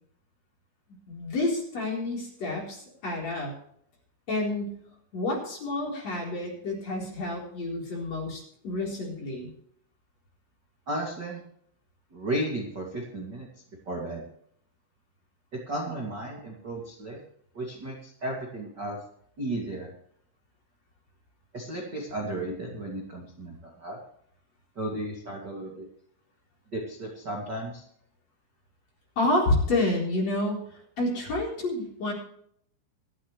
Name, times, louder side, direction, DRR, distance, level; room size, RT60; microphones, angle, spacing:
voice 1, 1.1-3.5 4.3-4.8 5.1-9.5 29.2-32.1, left 2 dB, 35° left, -2 dB, 4.8 m, -29 dB
voice 2, 10.9-11.4 12.1-13.5 13.9-14.2 15.7-17.2 17.5-19.0 19.4-19.9 21.5-24.0 24.8-25.9 26.7-27.8, right 1 dB, 30° right, -2 dB, 2.2 m, -34 dB
25.5 x 8.7 x 3.3 m, 0.67 s
omnidirectional pair, 5.5 m